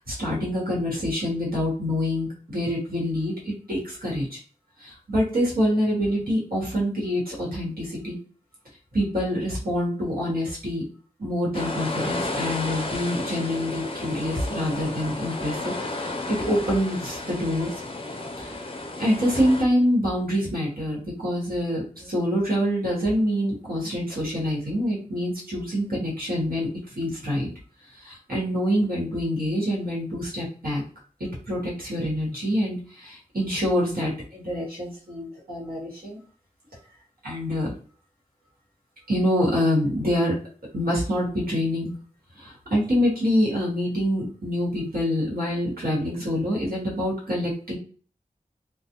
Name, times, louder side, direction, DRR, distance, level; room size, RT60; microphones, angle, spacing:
voice 1, 0.0-4.4 4.8-8.2 8.9-10.8 11.2-17.7 18.4-18.6 19.0-27.5 27.9-30.8 31.2-36.2 37.2-37.7 39.1-40.4 40.7-41.9 42.4-47.8, equal, 80° right, -5 dB, 1.1 m, -26 dB
sound 1, 11.5-19.6, left 2 dB, 40° left, 0.4 m, -32 dB
2.3 x 2.0 x 2.8 m, 0.41 s
wide cardioid pair, 45°, 15 cm